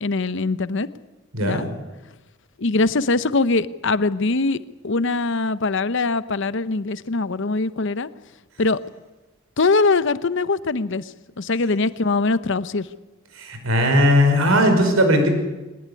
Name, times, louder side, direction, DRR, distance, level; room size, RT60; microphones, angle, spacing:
voice 1, 0.0-0.9 1.4-1.7 2.6-8.1 8.6-8.8 9.6-12.9, left 3 dB, 60° left, 14 dB, 0.8 m, -22 dB
voice 2, 13.4-15.3, equal, 90° right, 6 dB, 5.5 m, -18 dB
21.0 x 19.5 x 9.8 m, 1.1 s
head